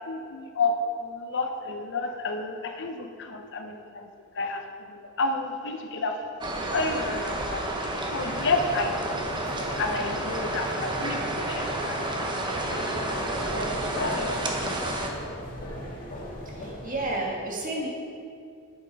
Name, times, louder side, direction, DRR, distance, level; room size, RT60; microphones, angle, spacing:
voice 1, 0.1-0.7 1.0-4.1 4.3-9.2 9.5-14.7, left 3 dB, 60° left, 5 dB, 0.8 m, -31 dB
sound 1, 6.4-15.1, right 1 dB, 20° right, 0.9 m, -30 dB
sound 2, 8.1-17.2, left 1 dB, 40° left, 1.9 m, -39 dB
voice 2, 16.6-17.9, right 2 dB, 40° right, -2 dB, 1.6 m, -31 dB
8.0 x 7.5 x 5.3 m, 2.4 s
head